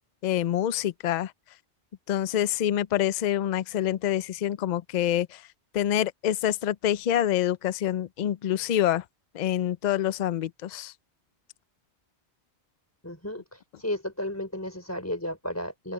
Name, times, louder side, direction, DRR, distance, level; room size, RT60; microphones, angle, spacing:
voice 1, 0.2-1.3 2.1-5.4 5.7-9.0 9.3-10.9, left 11 dB, 55° left, 0.6 m, -26 dB
voice 2, 13.0-15.9, left 1 dB, 15° left, 4.1 m, -33 dB
open air
omnidirectional pair, 1.1 m